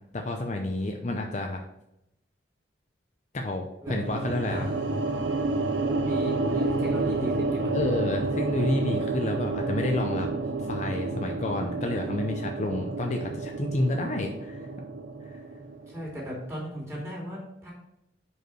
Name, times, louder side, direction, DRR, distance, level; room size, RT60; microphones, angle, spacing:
voice 1, 0.1-1.6 3.3-4.7 7.7-10.3 10.7-14.7, left 2 dB, 40° left, 3 dB, 0.6 m, -29 dB
sound 1, 3.9-16.1, right 3 dB, 70° right, 0.6 m, -30 dB
voice 2, 4.5-4.9 6.0-7.7 15.9-17.7, equal, 15° right, -4 dB, 2.8 m, -37 dB
5.3 x 4.8 x 6.0 m, 0.83 s
head